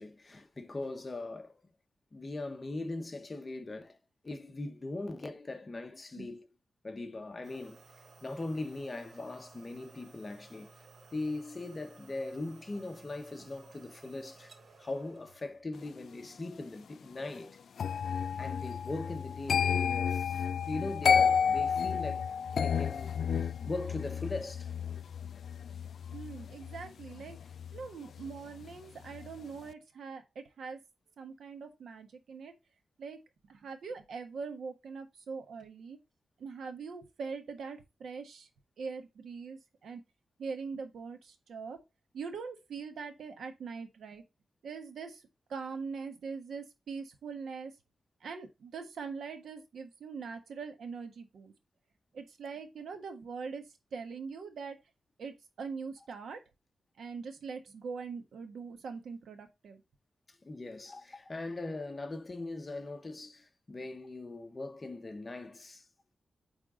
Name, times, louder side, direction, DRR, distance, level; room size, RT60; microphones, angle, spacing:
voice 1, 0.0-1.5 2.1-4.0 4.2-6.5 6.8-7.8 8.2-10.7 11.1-14.5 14.8-17.6 18.4-22.3 22.5-23.1 23.4-24.7 60.3-65.8, left 2 dB, 30° left, 1.0 m, -40 dB
sound 1, 7.4-15.6, right 4 dB, 55° right, 1.4 m, -57 dB
sound 2, 17.8-28.7 29.0-29.4, left 7 dB, 70° left, 0.3 m, -31 dB
voice 2, 26.1-27.4 27.7-30.8 31.2-32.5 33.0-33.2 33.5-36.0 36.4-38.5 38.8-40.0 40.4-41.8 42.1-44.2 44.6-45.2 45.5-47.7 48.2-51.5 52.1-53.6 53.9-54.8 55.2-56.4 57.0-59.8, right 5 dB, 90° right, 1.4 m, -42 dB
9.1 x 3.6 x 3.8 m
wide cardioid pair, 135°, 0 cm